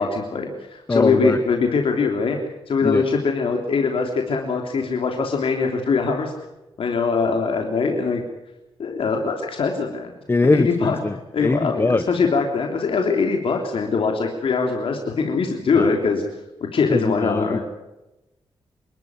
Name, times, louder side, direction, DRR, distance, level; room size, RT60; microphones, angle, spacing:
voice 1, 0.0-2.4 2.7-6.3 6.8-8.2 8.8-10.1 10.5-11.0 11.3-16.2 16.7-17.6, left 4 dB, 70° left, 2 dB, 3.2 m, -22 dB
voice 2, 0.9-1.4 2.8-3.0 10.3-12.0 15.7-15.9 16.9-17.6, left 3 dB, 25° left, 11 dB, 1.2 m, -21 dB
27.0 x 13.0 x 9.5 m, 0.98 s
wide cardioid pair, 110°, 10 cm